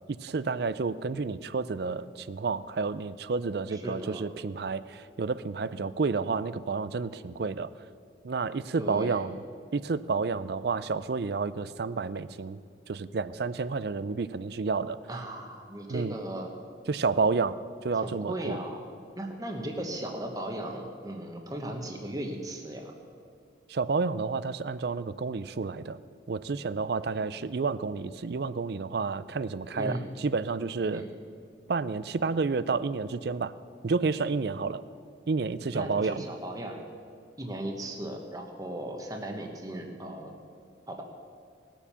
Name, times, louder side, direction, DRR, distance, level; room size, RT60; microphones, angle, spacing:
voice 1, 0.1-7.7 8.2-9.4 9.7-12.6 12.9-15.0 15.9-16.2 16.9-17.6 17.8-18.6 23.7-26.0 26.3-31.0 31.7-33.5 33.8-34.8 35.3-36.2, right 4 dB, 55° right, 16 dB, 0.4 m, -30 dB
voice 2, 3.7-4.3 8.7-9.2 15.1-16.5 18.0-18.8 19.2-22.9 29.7-30.1 30.9-31.1 35.7-36.9 37.4-40.3 40.9-41.0, right 1 dB, 20° right, 2 dB, 1.0 m, -37 dB
19.0 x 7.2 x 6.9 m, 2.3 s
head